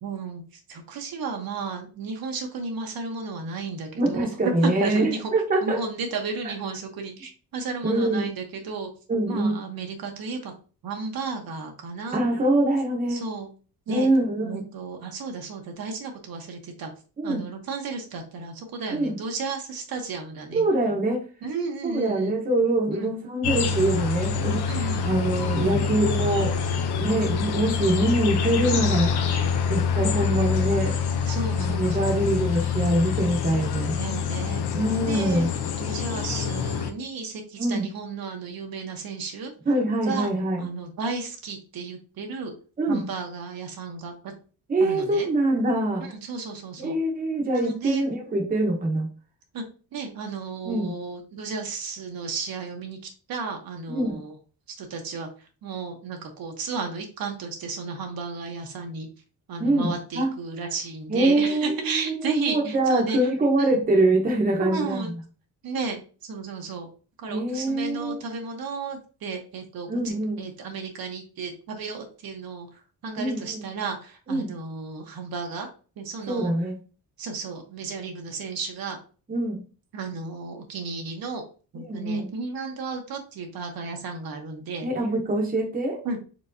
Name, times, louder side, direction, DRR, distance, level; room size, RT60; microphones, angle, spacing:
voice 1, 0.0-4.3 4.6-5.3 5.6-8.9 9.3-10.5 10.8-12.2 13.1-13.5 13.9-14.1 14.4-16.9 17.2-20.6 21.4-22.3 22.9-23.1 24.7-25.0 28.7-28.8 31.3-32.2 34.0-34.6 35.1-39.5 40.0-42.5 42.9-44.3 44.8-45.3 46.0-47.0 47.5-48.0 49.5-49.6 49.9-54.3 54.8-59.1 59.5-63.2 63.6-63.8 64.6-65.1 65.6-66.9 67.2-75.7 76.0-76.5 77.2-79.0 79.9-81.4 81.7-84.9 86.0-86.2, right 4 dB, 65° right, 3 dB, 1.0 m, -33 dB
voice 2, 4.0-5.8 7.8-8.3 9.1-9.5 12.1-13.2 13.9-14.6 17.2-17.4 18.9-19.2 20.5-21.2 21.8-24.6 25.0-26.6 26.8-29.1 29.7-31.0 31.6-34.0 34.7-35.5 37.6-37.9 39.7-40.6 42.8-43.0 44.7-46.1 46.8-49.1 50.6-51.0 53.9-54.2 59.6-60.3 61.1-65.1 67.3-68.2 69.9-70.5 73.2-73.5 74.3-74.5 76.3-76.7 79.3-79.6 81.7-82.3 84.8-86.0, right 1 dB, 20° right, 0 dB, 1.0 m, -24 dB
sound 1, 23.4-36.9, left 6 dB, 80° left, 0.8 m, -26 dB
4.6 x 3.9 x 2.7 m, 0.36 s
cardioid pair, 165°, 39 cm